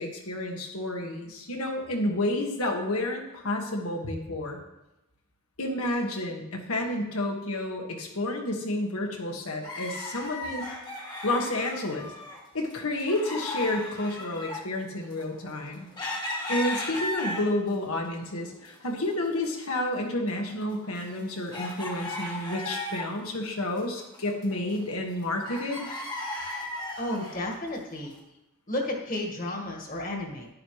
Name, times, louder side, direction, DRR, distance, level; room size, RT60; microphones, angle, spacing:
voice 1, 0.0-4.6 5.6-10.7 11.2-12.1 12.5-15.9 16.5-25.9, left 1 dB, 90° left, 1 dB, 1.8 m, -30 dB
sound 1, 9.6-12.4 12.7-17.8 18.2-19.1 19.4-19.5 20.1-23.3 23.6-25.2 25.4-27.4 28.0-28.1, left 2 dB, 20° left, 1.3 m, -36 dB
voice 2, 27.0-28.1 28.7-30.5, left 1 dB, 40° left, 1 dB, 1.7 m, -32 dB
10.5 x 10.5 x 3.2 m, 0.91 s
head